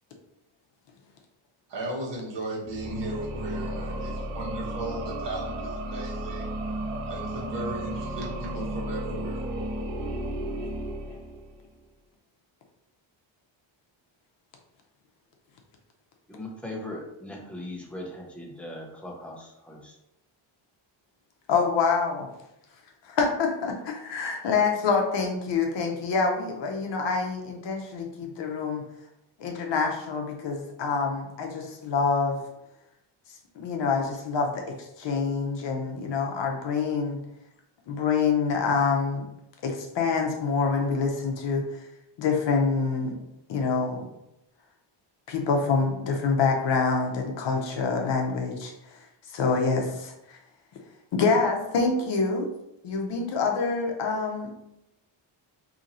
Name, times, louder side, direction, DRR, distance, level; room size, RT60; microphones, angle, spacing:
voice 1, 1.7-6.6 7.1-9.4, right 1 dB, 60° right, -4 dB, 1.2 m, -36 dB
sound 1, 2.6-11.7, right 1 dB, 85° right, 0.7 m, -33 dB
voice 2, 16.3-20.0, left 1 dB, 5° left, -2 dB, 0.4 m, -39 dB
voice 3, 21.5-22.3 23.0-28.8 29.4-32.4 33.3-37.2 37.9-39.2 39.6-41.9 42.2-43.1 43.5-44.1 45.3-50.4 51.1-52.5 52.8-54.5, left 4 dB, 60° left, 2 dB, 0.7 m, -26 dB
2.8 x 2.6 x 4.0 m, 0.86 s
wide cardioid pair, 170°, 49 cm